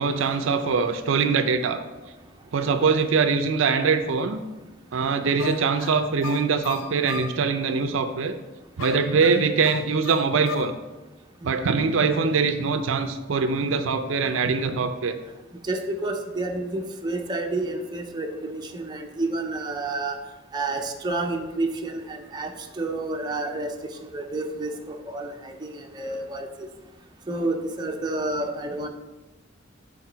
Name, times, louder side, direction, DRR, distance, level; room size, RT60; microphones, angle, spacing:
voice 1, 0.0-1.8 2.5-4.4 4.9-8.4 8.8-10.7 11.4-15.2, right 5 dB, 70° right, 9 dB, 0.4 m, -23 dB
sound 1, 5.4-7.4 8.8-10.8, left 6 dB, 70° left, 0.4 m, -36 dB
voice 2, 15.7-20.2 20.5-22.5 22.8-23.7 24.1-26.5 27.3-28.9, right 2 dB, 20° right, 3 dB, 0.5 m, -29 dB
7.2 x 4.0 x 5.0 m, 1.1 s
head